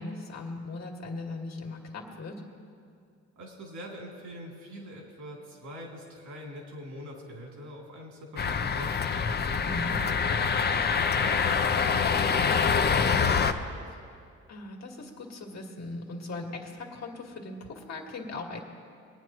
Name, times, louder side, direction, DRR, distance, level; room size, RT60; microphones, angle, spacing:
voice 1, 0.0-2.4 9.6-9.9 14.5-18.6, left 2 dB, 60° left, 0 dB, 2.1 m, -39 dB
voice 2, 3.4-9.1 9.8-13.8, equal, 75° right, -1 dB, 3.0 m, -43 dB
sound 1, 8.4-13.5, left 6 dB, 35° left, 0.7 m, -25 dB
23.0 x 9.3 x 3.1 m, 2.3 s
cardioid pair, 90°, 30 cm